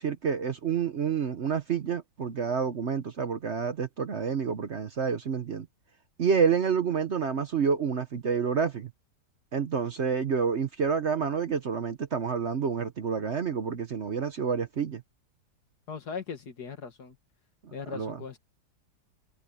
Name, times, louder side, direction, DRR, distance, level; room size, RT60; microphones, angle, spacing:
voice 1, 0.0-5.7 6.2-8.9 9.5-15.0 17.9-18.2, right 6 dB, 50° right, 1.0 m, -28 dB
voice 2, 15.9-17.2 17.7-18.4, left 5 dB, 70° left, 2.4 m, -39 dB
omnidirectional pair, 1.8 m